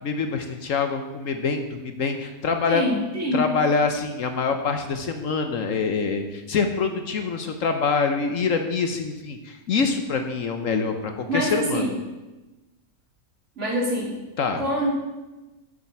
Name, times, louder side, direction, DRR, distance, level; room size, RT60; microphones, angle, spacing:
voice 1, 0.0-2.8 3.3-11.8 14.4-14.6, left 5 dB, 60° left, 6 dB, 1.2 m, -25 dB
voice 2, 2.7-3.5 11.3-12.0 13.6-14.2 14.6-14.9, equal, 50° right, -2 dB, 2.9 m, -25 dB
8.9 x 6.8 x 7.3 m, 1.1 s
omnidirectional pair, 1.6 m